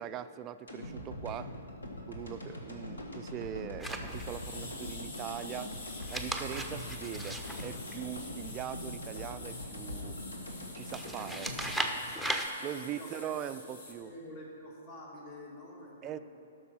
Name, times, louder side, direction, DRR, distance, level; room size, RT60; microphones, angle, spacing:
voice 1, 0.0-1.5 2.1-5.8 6.1-10.2 10.7-11.8 12.6-14.1 16.0-16.2, right 10 dB, 25° right, 12 dB, 0.3 m, -41 dB
sound 1, 0.7-12.9 13.3-13.4, left 1 dB, 85° left, 1.5 m, -43 dB
sound 2, 3.8-4.6 5.9-8.5 10.9-12.5, right 1 dB, 5° left, 0.7 m, -37 dB
sound 3, 4.1-13.9, left 2 dB, 60° left, 1.7 m, -47 dB
voice 2, 12.9-13.3 13.6-13.7 14.0-16.2, left 1 dB, 45° left, -3 dB, 2.4 m, -47 dB
12.5 x 6.2 x 5.7 m, 2.9 s
figure-of-eight pair, 120°, 0 cm